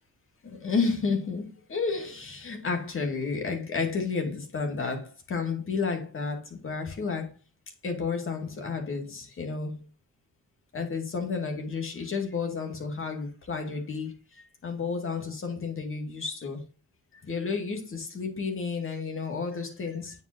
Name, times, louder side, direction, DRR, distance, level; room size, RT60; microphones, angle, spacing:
voice 1, 0.6-1.4 1.7-7.3 7.8-9.7 10.7-14.1 14.6-16.6 17.3-20.1, left 4 dB, 45° left, 2.3 m, -31 dB
8.7 x 5.2 x 2.8 m
cardioid pair, 90°, 30 cm